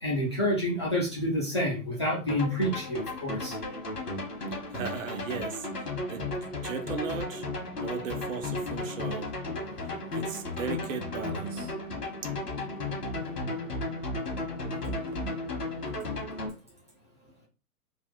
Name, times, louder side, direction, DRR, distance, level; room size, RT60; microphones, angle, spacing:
voice 1, 0.0-3.6, equal, 20° left, 0.3 m, -28 dB
sound 1, 2.3-16.5, left 2 dB, 80° left, 1.4 m, -34 dB
voice 2, 4.7-6.3 6.6-7.5 7.7-9.3 10.1-11.7 12.2-12.3 12.6-12.8 13.3-13.4 14.7-15.4 16.2-16.3, right 6 dB, 55° right, 0.9 m, -37 dB
3.4 x 2.5 x 3.7 m
figure-of-eight pair, 120°, 46 cm